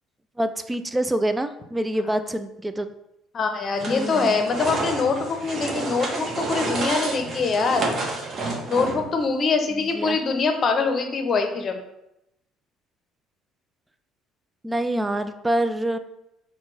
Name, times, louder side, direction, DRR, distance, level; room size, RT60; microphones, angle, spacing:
voice 1, 0.4-2.9 3.9-4.4 9.7-10.2 14.6-16.0, right 1 dB, 15° right, 10 dB, 0.4 m, -26 dB
voice 2, 3.3-7.9 8.7-11.8, left 4 dB, 45° left, 5 dB, 0.7 m, -24 dB
sound 1, 3.8-9.2, right 2 dB, 50° right, 0.9 m, -29 dB
4.3 x 2.3 x 4.0 m, 0.85 s
hypercardioid pair, 65°, 0 cm